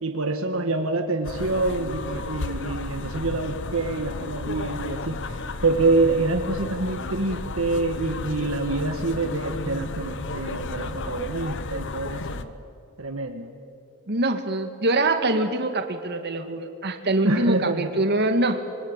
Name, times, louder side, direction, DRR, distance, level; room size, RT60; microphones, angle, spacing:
voice 1, 0.0-12.6 13.0-13.5 17.2-17.9, right 2 dB, 70° right, 5 dB, 1.6 m, -26 dB
sound 1, 1.2-12.4, left 3 dB, 60° left, 1.1 m, -33 dB
voice 2, 14.1-18.6, right 2 dB, 50° right, 7 dB, 1.9 m, -24 dB
25.5 x 23.5 x 9.0 m, 2.5 s
head